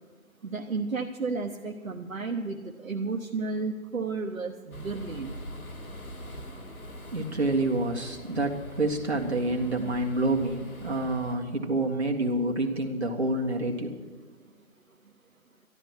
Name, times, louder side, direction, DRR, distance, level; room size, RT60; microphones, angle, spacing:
voice 1, 0.4-5.3, right 4 dB, 70° right, 2 dB, 1.1 m, -32 dB
sound 1, 4.7-11.4, equal, 85° left, 2.4 m, -43 dB
voice 2, 7.1-14.0, right 2 dB, 50° right, 0 dB, 2.0 m, -28 dB
12.5 x 12.0 x 6.0 m, 1.5 s
figure-of-eight pair, 180°, 42 cm